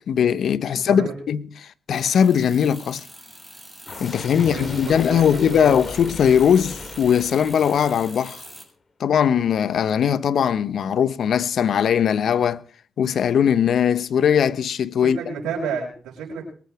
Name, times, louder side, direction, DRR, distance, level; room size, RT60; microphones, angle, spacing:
voice 1, 0.1-3.0 4.0-8.4 9.0-12.6 13.0-15.2, left 8 dB, 65° left, 0.9 m, -20 dB
sound 1, 1.9-8.7, right 1 dB, 10° right, 6.9 m, -43 dB
sound 2, 3.9-8.5, left 3 dB, 40° left, 3.3 m, -38 dB
voice 2, 4.5-5.9 15.0-16.4, right 6 dB, 80° right, 5.5 m, -31 dB
23.0 x 8.5 x 4.8 m
supercardioid pair, 50°, 0 cm